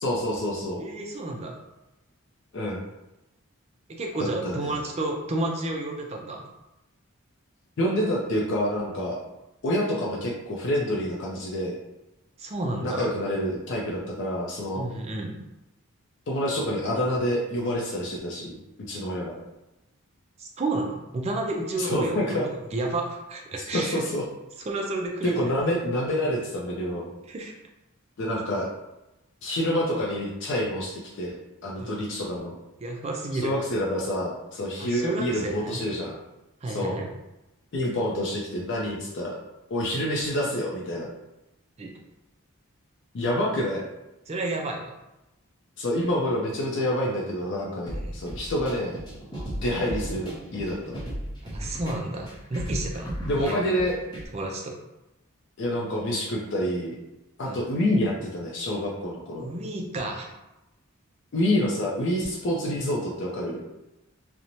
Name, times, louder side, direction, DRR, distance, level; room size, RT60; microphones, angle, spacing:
voice 1, 0.0-0.8 2.5-2.8 4.2-4.8 7.8-9.2 9.6-11.8 12.8-14.8 16.3-18.6 18.9-19.4 21.8-22.5 23.7-24.2 25.2-27.1 28.2-28.7 29.4-31.4 31.6-32.6 33.3-36.2 36.7-36.9 37.7-39.4 39.7-41.1 43.1-43.8 45.8-49.0 49.6-51.0 53.3-54.0 55.6-56.9 57.4-59.5 61.3-63.6, left 1 dB, 55° left, -3 dB, 0.4 m, -27 dB
voice 2, 0.8-1.5 3.9-6.5 12.4-13.1 14.7-15.3 20.4-24.0 24.7-25.4 27.3-27.5 31.8-32.0 32.8-33.5 34.8-35.8 36.6-37.1 41.8-41.9 44.3-44.9 48.0-48.1 51.4-53.7 54.3-54.7 57.4-57.7 59.4-60.3, right 2 dB, 30° right, 1 dB, 0.3 m, -31 dB
sound 1, 47.9-54.3, equal, 20° left, 0.7 m, -35 dB
2.5 x 2.0 x 2.9 m, 0.96 s
head